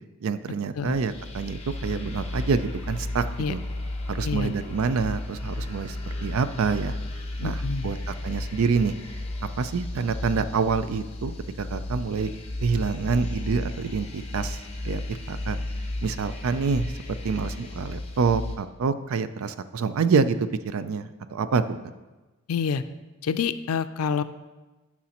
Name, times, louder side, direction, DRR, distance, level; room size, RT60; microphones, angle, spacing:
voice 1, 0.2-3.6 4.1-6.9 7.4-8.9 9.6-11.3 11.6-12.3 12.6-14.6 14.8-15.6 16.0-16.9 17.2-21.8, right 5 dB, 75° right, 12 dB, 0.4 m, -27 dB
sound 1, 0.8-18.6, left 1 dB, 30° left, 0.8 m, -34 dB
voice 2, 4.2-4.5 7.4-7.9 22.5-22.8 23.2-24.2, left 6 dB, 90° left, 12 dB, 0.4 m, -27 dB
11.5 x 6.0 x 2.9 m, 1.2 s
head